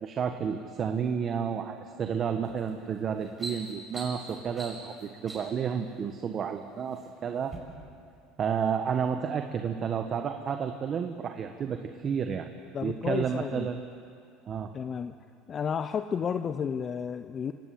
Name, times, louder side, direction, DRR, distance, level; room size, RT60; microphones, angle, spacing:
voice 1, 0.0-7.6 8.4-12.5 12.8-13.8 14.5-14.7, right 7 dB, 40° right, 6 dB, 1.4 m, -31 dB
sound 1, 2.5-2.7 3.1-5.7 6.5-7.0 7.4-7.6, right 2 dB, 15° right, 6.6 m, -42 dB
voice 2, 12.7-13.7 14.7-15.2 15.5-17.5, left 7 dB, 35° left, 9 dB, 0.8 m, -32 dB
25.5 x 18.5 x 8.0 m, 2.4 s
supercardioid pair, 105°, 0 cm